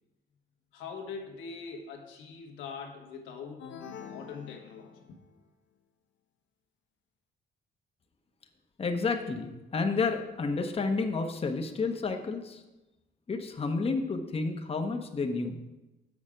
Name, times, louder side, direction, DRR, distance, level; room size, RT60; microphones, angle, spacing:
voice 1, 0.7-5.2, left 5 dB, 90° left, 1 dB, 1.4 m, -43 dB
sound 1, 3.6-5.4, left 7 dB, 70° left, 0.7 m, -46 dB
voice 2, 8.8-12.6 13.3-15.6, left 4 dB, 30° left, 4 dB, 0.9 m, -30 dB
7.1 x 6.5 x 5.1 m, 1.0 s
cardioid pair, 90°, 20 cm